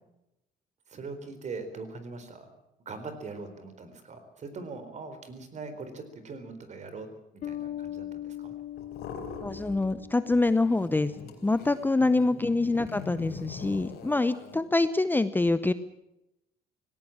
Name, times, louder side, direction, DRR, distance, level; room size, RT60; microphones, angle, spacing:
voice 1, 0.9-2.5 2.8-7.1 7.3-8.5 12.0-12.5, right 3 dB, 45° right, 10 dB, 4.2 m, -41 dB
Bass guitar, 7.4-10.9, left 12 dB, 50° left, 0.9 m, -40 dB
sound 1, 8.8-10.0 10.3-14.6, left 6 dB, 75° left, 4.1 m, -43 dB
voice 2, 9.4-11.1 11.4-15.7, left 2 dB, 10° left, 13 dB, 0.8 m, -25 dB
18.5 x 17.5 x 8.8 m, 0.86 s
cardioid pair, 110°, 17 cm